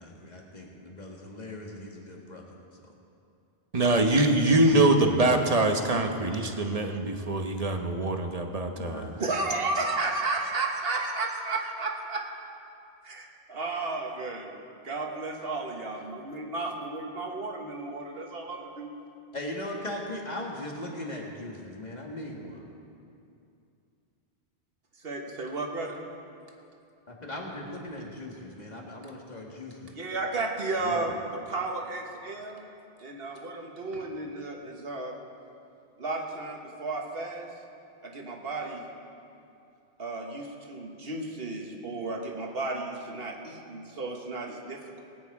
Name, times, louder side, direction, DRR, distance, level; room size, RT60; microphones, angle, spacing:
voice 1, 0.0-2.4 8.7-9.4 19.3-22.6 27.1-29.9 30.8-31.1, left 1 dB, 40° left, -1 dB, 2.0 m, -39 dB
voice 2, 3.7-9.0, right 2 dB, 35° right, 4 dB, 1.1 m, -24 dB
voice 3, 9.2-12.3 13.0-18.9 25.0-26.0 29.9-32.6 33.0-35.1 36.0-37.5 38.0-38.8 40.0-45.0, right 3 dB, 65° right, 1 dB, 1.6 m, -33 dB
20.0 x 9.5 x 4.8 m, 2.6 s
omnidirectional pair, 1.1 m